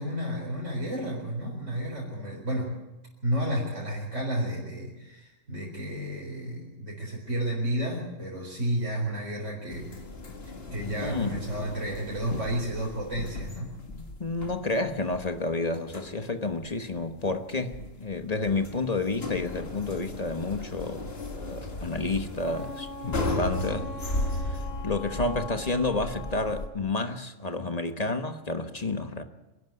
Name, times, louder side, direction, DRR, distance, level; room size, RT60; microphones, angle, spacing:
voice 1, 0.0-2.8 3.2-9.9 10.5-13.7, right 1 dB, 75° right, 4.7 m, -32 dB
sound 1, 9.7-26.7, left 2 dB, 50° left, 2.1 m, -36 dB
voice 2, 11.0-11.4 14.0-29.2, left 3 dB, 30° left, 1.3 m, -30 dB
Wind instrument woodwind instrument, 22.4-26.7, left 2 dB, 90° left, 7.9 m, -42 dB
25.5 x 11.5 x 9.5 m
omnidirectional pair, 1.3 m